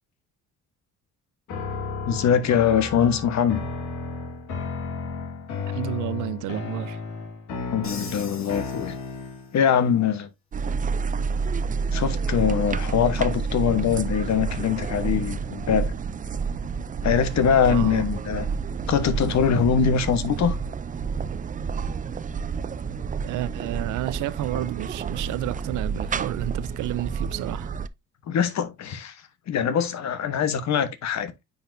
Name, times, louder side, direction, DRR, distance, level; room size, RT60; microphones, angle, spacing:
sound 1, 1.5-9.6, left 4 dB, 80° left, 2.0 m, -33 dB
voice 1, 2.1-3.6 7.7-8.9 9.5-10.3 11.9-15.9 17.0-18.5 18.9-20.6 28.3-29.1 29.5-31.3, left 7 dB, 65° left, 1.2 m, -23 dB
voice 2, 5.7-7.0 17.7-18.0 23.2-27.7, right 15 dB, 85° right, 0.6 m, -31 dB
Crash cymbal, 7.8-9.6, left 4 dB, 45° left, 2.4 m, -42 dB
sound 2, 10.5-27.9, right 5 dB, 25° right, 0.4 m, -29 dB
9.2 x 4.1 x 2.6 m
cardioid pair, 90°, 30 cm